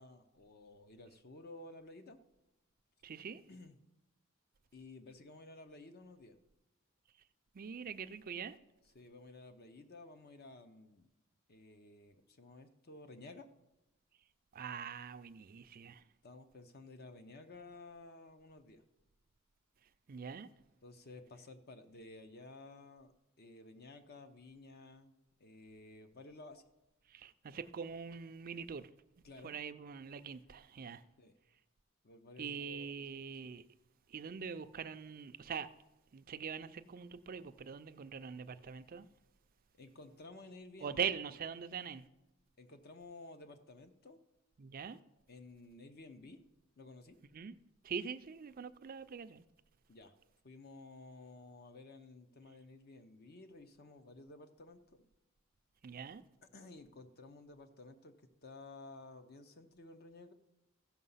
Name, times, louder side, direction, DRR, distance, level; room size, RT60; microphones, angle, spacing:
voice 1, 0.0-2.2 3.5-3.8 4.7-6.4 8.9-11.1 11.5-13.5 16.2-18.8 20.8-23.1 23.4-25.1 25.4-26.6 29.2-29.5 31.2-31.4 32.0-33.0 33.4-33.6 39.8-41.0 42.6-44.2 45.3-46.4 46.8-47.2 49.9-50.1 50.4-55.0 56.5-58.2 58.4-60.3, left 2 dB, 45° left, 0.7 m, -54 dB
voice 2, 3.0-3.4 7.5-8.6 14.5-16.0 20.1-20.5 27.1-28.9 29.4-31.0 32.4-33.6 34.1-35.7 36.1-39.1 40.8-42.1 44.6-45.0 47.3-47.6 47.8-49.4 55.8-56.2, right 6 dB, 40° right, 0.4 m, -43 dB
15.0 x 5.8 x 5.6 m
head